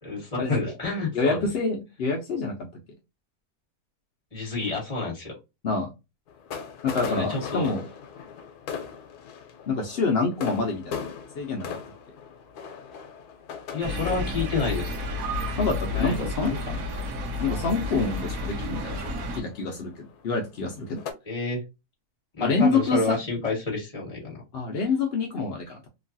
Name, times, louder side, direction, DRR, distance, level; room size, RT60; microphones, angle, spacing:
voice 1, 0.0-1.5 4.3-5.3 7.0-7.7 13.7-15.0 15.9-16.6 21.2-21.6 22.4-24.4, left 3 dB, 25° left, -3 dB, 1.3 m, -29 dB
voice 2, 1.1-2.7 5.6-5.9 6.8-7.8 9.7-11.0 11.4-11.7 15.6-16.5 17.4-19.0 19.4-21.0 22.4-23.2 24.5-25.9, left 4 dB, 65° left, 1 dB, 0.6 m, -26 dB
sound 1, 6.3-21.1, left 6 dB, 80° left, 1.1 m, -40 dB
sound 2, 13.8-19.4, left 2 dB, 70° right, 1.1 m, -31 dB
3.0 x 2.3 x 2.5 m, 0.25 s
omnidirectional pair, 1.6 m